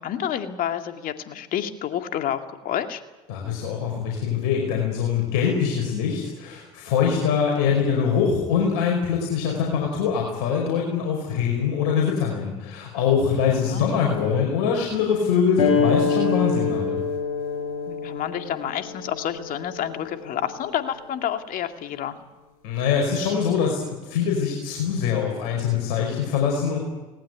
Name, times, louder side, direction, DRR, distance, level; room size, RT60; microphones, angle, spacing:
voice 1, 0.0-3.0 13.7-13.9 17.9-22.2, left 10 dB, 55° left, 6 dB, 2.3 m, -29 dB
voice 2, 3.3-17.0 22.6-26.8, left 6 dB, 70° left, -1 dB, 5.2 m, -23 dB
sound 1, 15.6-20.7, left 5 dB, 85° left, 5.9 m, -26 dB
19.5 x 19.0 x 9.5 m, 1.1 s
hypercardioid pair, 70°, 17 cm